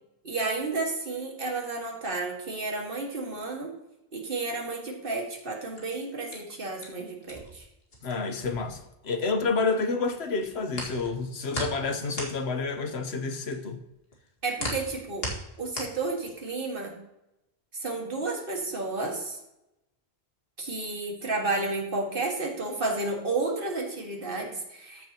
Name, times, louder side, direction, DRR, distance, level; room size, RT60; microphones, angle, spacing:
voice 1, 0.2-3.7 4.1-7.7 14.4-15.3 15.6-17.0 17.7-19.4 20.6-25.1, right 3 dB, 60° right, 0 dB, 2.0 m, -31 dB
sound 1, 5.8-9.7 10.0-16.6, left 1 dB, 70° left, 2.2 m, -38 dB
voice 2, 8.0-8.8 9.0-13.8, left 4 dB, 90° left, 7 dB, 1.3 m, -29 dB
14.0 x 6.9 x 2.9 m, 0.89 s
omnidirectional pair, 1.0 m